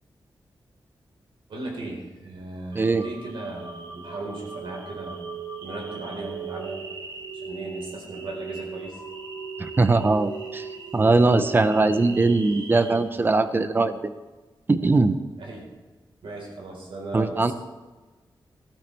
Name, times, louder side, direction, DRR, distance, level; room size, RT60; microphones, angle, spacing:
voice 1, 1.5-6.8 7.3-9.0 9.4-9.8 15.4-15.7 16.2-17.5, right 2 dB, 85° right, -1 dB, 4.1 m, -37 dB
sound 1, 2.7-13.0, right 5 dB, 60° right, 2.6 m, -38 dB
voice 2, 9.6-10.7 10.9-14.1 14.7-15.2 17.1-17.5, right 3 dB, 25° right, 11 dB, 0.6 m, -21 dB
15.5 x 13.0 x 3.4 m, 1.3 s
wide cardioid pair, 165°, 9 cm